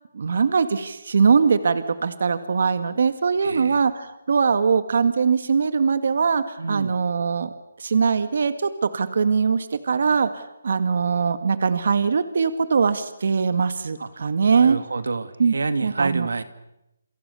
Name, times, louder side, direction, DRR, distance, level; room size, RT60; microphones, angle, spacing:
voice 1, 0.1-7.5 7.8-14.8 15.4-15.5 15.8-16.3, right 5 dB, 55° right, 11 dB, 2.0 m, -21 dB
voice 2, 3.4-3.8 6.6-7.0 14.0-16.4, right 3 dB, 85° right, 11 dB, 2.4 m, -28 dB
29.0 x 26.5 x 7.1 m, 0.87 s
hypercardioid pair, 170°, 0 cm